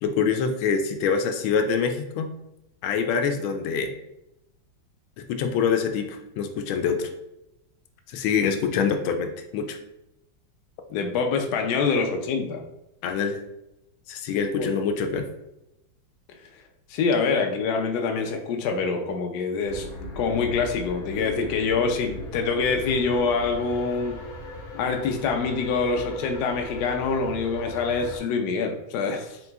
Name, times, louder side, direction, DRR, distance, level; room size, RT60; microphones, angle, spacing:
voice 1, 0.0-2.3 2.8-3.9 5.2-7.1 8.1-9.8 13.0-13.4 14.1-15.2, left 6 dB, 90° left, 6 dB, 1.4 m, -25 dB
voice 2, 10.9-12.6 14.5-14.7 16.3-16.4 16.9-19.9 20.1-24.2 24.7-29.4, left 4 dB, 70° left, 4 dB, 1.0 m, -25 dB
sound 1, 19.7-28.2, left 1 dB, 50° left, 1.1 m, -38 dB
3.8 x 3.0 x 3.4 m, 0.88 s
omnidirectional pair, 2.2 m